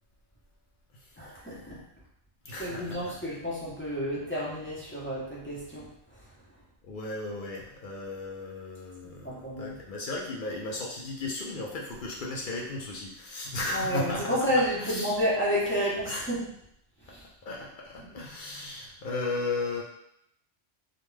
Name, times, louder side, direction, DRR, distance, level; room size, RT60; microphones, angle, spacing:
voice 1, 1.2-1.8 2.5-6.3 9.0-9.8 13.7-16.5 17.0-17.2 18.0-18.1, equal, 15° left, -9 dB, 0.6 m, -31 dB
voice 2, 2.5-3.2 6.8-14.3 14.8-15.2 16.1-16.3 17.1-19.8, left 2 dB, 60° left, -2 dB, 0.6 m, -35 dB
2.4 x 2.2 x 3.1 m, 0.73 s
omnidirectional pair, 1.2 m